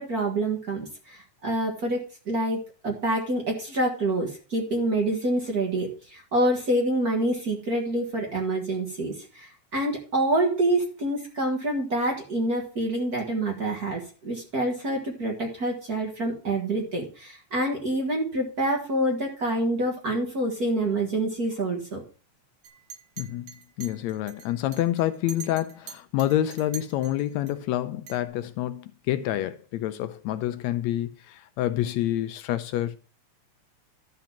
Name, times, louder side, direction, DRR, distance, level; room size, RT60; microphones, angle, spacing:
voice 1, 0.0-22.0, right 1 dB, 40° right, 1.5 m, -27 dB
Chink clink, 22.6-27.5 28.1-28.3, right 7 dB, 70° right, 2.7 m, -44 dB
voice 2, 23.2-23.5 23.8-33.0, left 13 dB, 80° left, 1.8 m, -28 dB
12.0 x 4.0 x 7.1 m
omnidirectional pair, 3.3 m